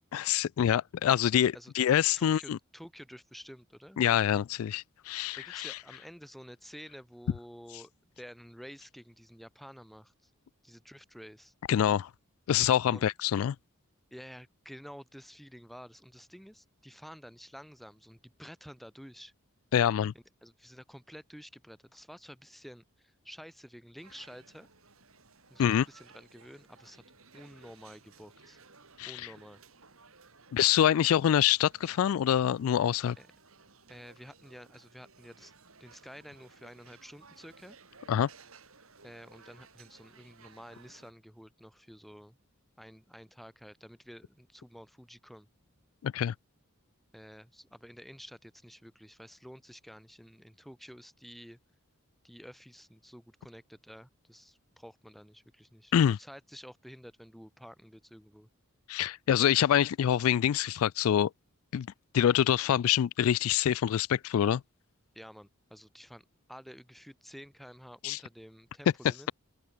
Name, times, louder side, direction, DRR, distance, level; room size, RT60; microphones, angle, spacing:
voice 1, 0.1-2.6 4.0-5.8 11.7-12.1 12.5-13.5 19.7-20.1 25.6-25.8 29.0-29.3 30.5-33.2 38.1-38.3 46.0-46.3 55.9-56.2 58.9-61.3 61.7-61.9 62.1-64.6 68.0-68.2, left 10 dB, 75° left, 0.3 m, -26 dB
voice 2, 2.1-4.0 5.3-7.9 8.2-10.3 10.6-11.5 12.9-13.1 14.1-19.3 20.1-24.7 25.5-27.0 27.3-28.6 29.1-29.6 33.2-33.3 33.9-35.5 35.8-37.8 39.0-42.4 42.8-45.5 47.1-51.6 52.2-58.5 65.1-69.3, equal, ahead, 6.8 m, -50 dB
sound 1, 24.0-41.1, right 4 dB, 70° right, 5.5 m, -58 dB
open air
head